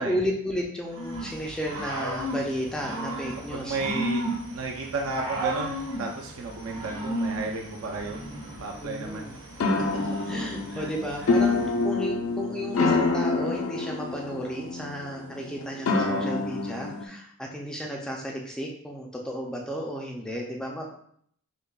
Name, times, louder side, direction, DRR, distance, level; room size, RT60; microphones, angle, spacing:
voice 1, 0.0-3.8 8.7-9.4 9.7-20.9, equal, 5° left, -1 dB, 0.3 m, -33 dB
Growling / Cricket, 0.9-11.8, right 1 dB, 80° right, 1.2 m, -35 dB
voice 2, 3.5-4.2 4.5-8.2 8.6-9.3 9.9-10.0 10.7-10.9 11.2-11.3 15.9-16.3, right 3 dB, 65° right, 1 dB, 0.4 m, -33 dB
sound 1, 9.6-17.1, left 3 dB, 65° left, 0.4 m, -27 dB
6.4 x 2.2 x 2.3 m, 0.65 s
head